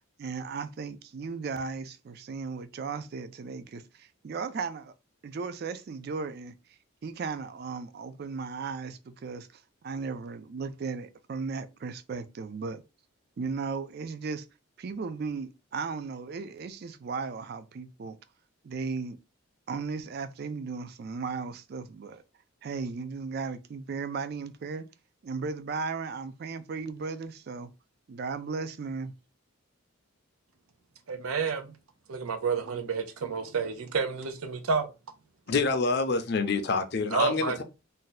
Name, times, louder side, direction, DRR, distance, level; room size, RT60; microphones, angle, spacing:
voice 1, 0.2-4.9 5.2-6.5 7.0-12.8 13.4-14.5 14.8-18.2 18.6-19.2 19.7-22.2 22.6-24.8 25.2-27.7 28.1-29.1, right 4 dB, 50° right, 0.3 m, -36 dB
voice 2, 31.1-31.7 32.1-34.9 37.1-37.6, right 5 dB, 85° right, 0.6 m, -30 dB
voice 3, 35.5-37.6, left 4 dB, 50° left, 0.5 m, -27 dB
2.6 x 2.2 x 3.9 m
head